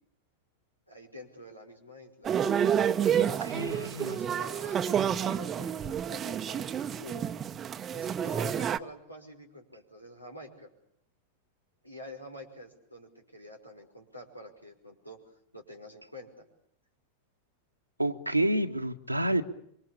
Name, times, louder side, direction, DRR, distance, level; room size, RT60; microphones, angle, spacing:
voice 1, 0.9-2.3 3.0-7.3 7.9-10.7 11.8-15.2 15.5-16.5, equal, 90° left, 1 dB, 5.4 m, -47 dB
sound 1, 2.2-8.8, right 8 dB, 25° right, 1.0 m, -29 dB
voice 2, 3.5-4.1 18.0-19.4, right 1 dB, 85° right, 6 dB, 1.6 m, -29 dB
26.5 x 24.0 x 8.7 m, 0.71 s
figure-of-eight pair, 90°, 0 cm